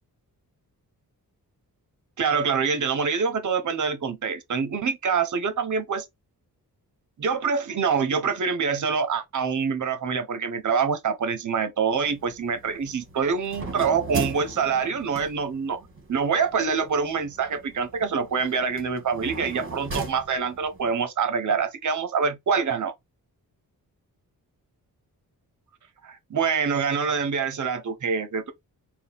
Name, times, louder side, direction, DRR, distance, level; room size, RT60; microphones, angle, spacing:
voice 1, 2.2-6.1 7.2-15.8 16.1-22.9 26.0-28.5, right 5 dB, 55° right, 0.9 m, -25 dB
sound 1, 12.0-20.9, right 3 dB, 35° right, 1.4 m, -38 dB
3.7 x 2.4 x 3.8 m
wide cardioid pair, 135°, 37 cm